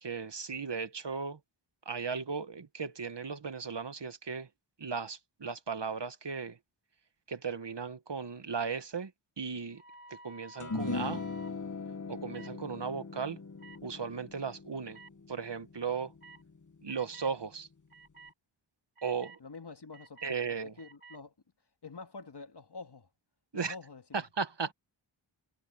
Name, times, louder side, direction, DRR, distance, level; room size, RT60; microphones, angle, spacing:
voice 1, 0.0-1.4 1.8-4.5 4.8-6.6 7.3-9.1 9.4-9.8 10.1-11.2 12.1-13.4 13.8-15.0 15.3-16.1 16.8-17.7 19.0-19.4 20.2-20.7 23.5-23.7 24.1-24.7, right 5 dB, 55° right, 1.6 m, -36 dB
sound 1, 9.7-11.5 12.3-12.5 13.6-13.8 14.9-15.1 16.2-16.4 16.9-17.3 17.9-18.3 19.0-19.4 19.9-20.3 20.8-21.2, right 2 dB, 80° right, 5.9 m, -53 dB
sound 2, 10.6-17.1, left 4 dB, 35° left, 1.2 m, -40 dB
voice 2, 19.4-21.3 21.8-23.1 23.5-24.2, left 4 dB, 55° left, 1.9 m, -47 dB
wide cardioid pair, 65°, 49 cm